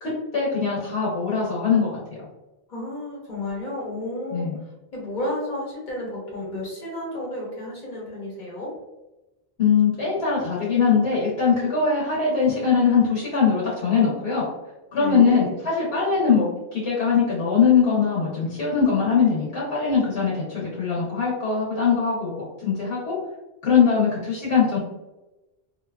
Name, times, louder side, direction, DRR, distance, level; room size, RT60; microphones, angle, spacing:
voice 1, 0.0-2.0 4.3-4.6 9.6-14.4 14.9-23.1 23.6-24.8, left 6 dB, 75° left, -7 dB, 1.1 m, -21 dB
voice 2, 2.7-4.5 4.9-8.7 14.9-15.5, left 1 dB, 45° left, -5 dB, 1.1 m, -32 dB
2.7 x 2.3 x 2.2 m, 1.0 s
omnidirectional pair, 1.1 m